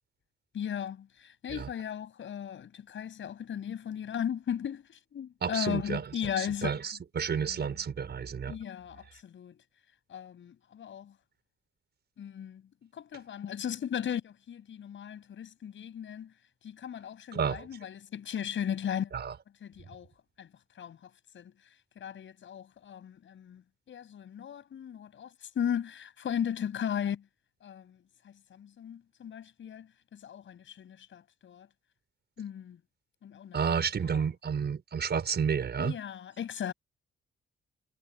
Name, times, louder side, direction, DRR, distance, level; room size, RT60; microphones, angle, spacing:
voice 1, 0.5-6.8 7.4-7.7 8.5-9.6 10.1-11.1 12.2-12.6 12.9-16.3 16.6-19.1 19.6-20.1 20.4-20.5 20.8-21.5 22.0-23.6 23.9-25.3 25.5-27.2 27.6-28.0 28.2-31.7 32.4-32.8 33.2-33.6 34.1-34.2 35.8-36.7, left 9 dB, 70° left, 7.8 m, -37 dB
voice 2, 5.4-6.1 6.4-8.6 17.3-17.7 19.1-19.3 33.5-36.0, right 6 dB, 55° right, 5.9 m, -31 dB
cardioid pair, 80°, 21 cm